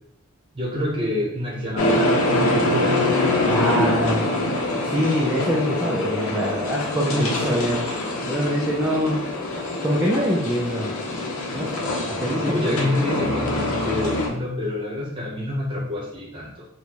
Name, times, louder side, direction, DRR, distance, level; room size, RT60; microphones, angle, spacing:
voice 1, 0.5-3.4 12.4-16.7, left 1 dB, 25° right, -4 dB, 1.0 m, -27 dB
sound 1, 1.8-14.3, left 1 dB, 75° left, 0.7 m, -24 dB
voice 2, 3.5-4.3 4.8-7.9 8.2-9.2 9.8-10.9 11.5-11.9 12.2-12.8, equal, 10° right, -5 dB, 0.4 m, -24 dB
4.2 x 2.2 x 3.0 m, 0.74 s
head